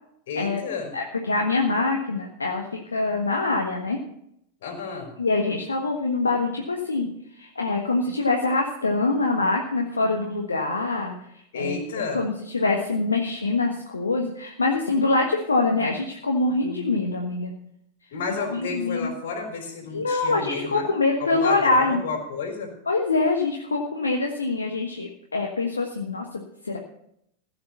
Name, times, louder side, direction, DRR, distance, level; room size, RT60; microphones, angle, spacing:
voice 1, 0.3-0.9 4.6-5.1 11.5-12.2 18.1-22.7, left 4 dB, 55° left, 3 dB, 4.1 m, -31 dB
voice 2, 0.9-4.0 5.2-7.1 7.4-11.2 11.5-11.8 12.1-17.5 18.5-19.1 19.9-22.0 22.9-26.8, left 3 dB, 75° left, 1 dB, 1.4 m, -24 dB
15.5 x 6.8 x 6.9 m, 0.75 s
figure-of-eight pair, 90°, 0 cm